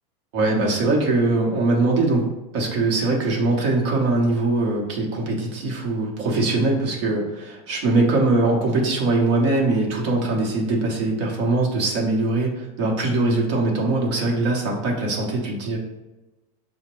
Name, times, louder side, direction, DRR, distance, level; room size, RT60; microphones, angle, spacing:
voice 1, 0.3-2.2 2.5-15.8, right 2 dB, 45° right, -1 dB, 0.9 m, -22 dB
5.8 x 2.1 x 3.0 m, 1.1 s
supercardioid pair, 175°, 20 cm